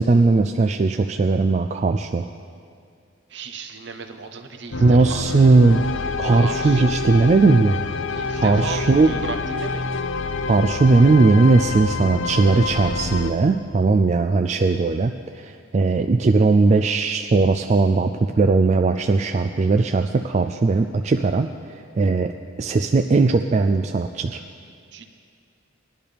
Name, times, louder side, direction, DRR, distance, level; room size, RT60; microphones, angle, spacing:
voice 1, 0.0-2.2 4.8-5.8 6.2-7.8 8.3-9.1 10.5-18.1 18.4-22.3 22.6-24.4, right 3 dB, 35° right, 6 dB, 0.3 m, -18 dB
voice 2, 3.3-5.8 6.3-7.0 8.1-9.9 24.9-25.1, right 4 dB, 65° right, 5 dB, 1.0 m, -35 dB
sound 1, 4.7-13.3, left 4 dB, 75° left, 0.6 m, -27 dB
19.5 x 11.0 x 3.4 m, 2.3 s
head